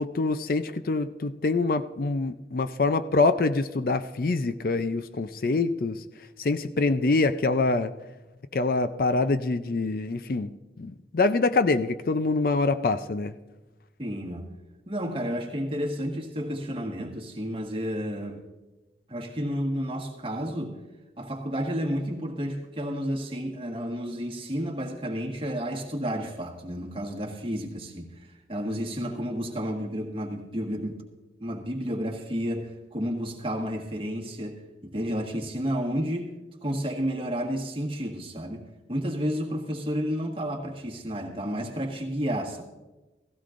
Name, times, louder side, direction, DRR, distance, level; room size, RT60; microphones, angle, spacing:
voice 1, 0.0-6.0 6.4-7.9 8.5-10.5 10.8-13.3, left 3 dB, 50° left, 11 dB, 0.5 m, -25 dB
voice 2, 14.0-14.5 14.9-18.4 19.1-20.8 21.2-31.0 31.4-36.3 36.6-42.6, equal, 30° right, 0 dB, 1.6 m, -31 dB
16.5 x 16.0 x 2.5 m, 1.1 s
head